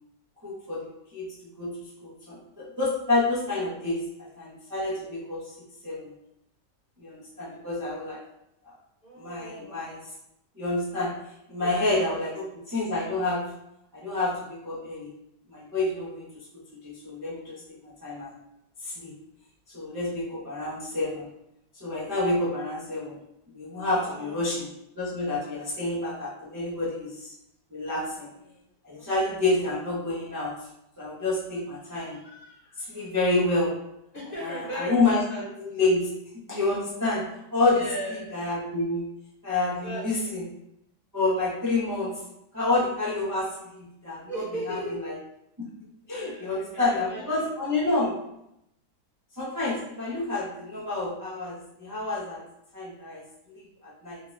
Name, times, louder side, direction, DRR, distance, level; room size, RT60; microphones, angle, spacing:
voice 1, 0.4-0.9 1.1-1.3 1.6-1.7 2.0-4.0 4.4-5.4 5.8-6.1 7.0-8.2 9.2-10.0 10.6-11.1 11.5-13.4 13.9-15.1 15.5-16.4 16.7-18.3 18.8-19.2 19.7-21.3 21.8-23.2 23.5-24.7 25.0-27.3 27.7-28.3 28.8-30.5 31.0-32.4 32.8-33.7 34.4-35.2 35.6-36.1 36.5-37.8 38.3-39.1 39.4-40.4 41.1-42.2 42.5-44.2 44.7-44.8 45.0-45.1 46.1-48.1 49.4-52.4 52.7-53.2 53.5-54.2, left 2 dB, 30° right, -10 dB, 0.3 m, -28 dB
voice 2, 9.0-10.0 11.6-12.2 20.5-20.9 23.9-24.4 28.3-29.1 32.9-33.2 34.1-35.5 37.7-38.3 39.8-40.3 44.3-45.0 46.1-47.5, right 1 dB, 35° left, -6 dB, 1.1 m, -38 dB
3.6 x 2.4 x 3.1 m, 0.82 s
omnidirectional pair, 1.8 m